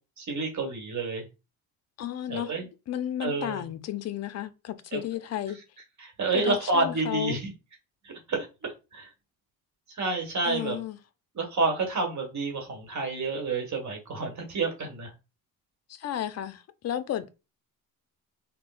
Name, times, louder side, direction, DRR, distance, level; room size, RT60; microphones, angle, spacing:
voice 1, 0.2-1.2 2.3-2.7 3.2-3.6 4.9-5.0 6.0-7.5 8.3-9.1 10.0-10.8 11.3-15.1, right 3 dB, 40° right, 1.3 m, -29 dB
voice 2, 2.0-2.6 2.9-5.6 6.3-7.4 10.4-11.0 15.9-17.3, left 11 dB, 40° left, 0.5 m, -33 dB
3.6 x 2.2 x 2.3 m
supercardioid pair, 65°, 42 cm